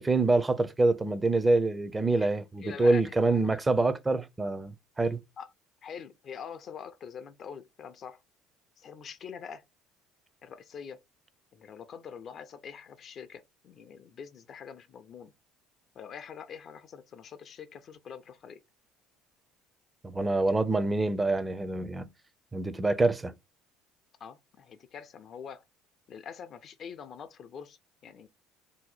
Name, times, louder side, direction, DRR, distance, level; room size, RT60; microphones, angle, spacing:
voice 1, 0.0-5.2 20.0-22.1 22.5-23.3, right 2 dB, 20° right, 0.4 m, -26 dB
voice 2, 2.6-3.6 5.4-5.5 5.8-8.2 8.8-9.6 10.4-11.0 11.5-15.3 16.0-18.6 24.2-25.6 26.1-27.8 28.0-28.3, left 7 dB, 50° left, 0.4 m, -45 dB
2.7 x 2.0 x 4.0 m
hypercardioid pair, 75°, 0 cm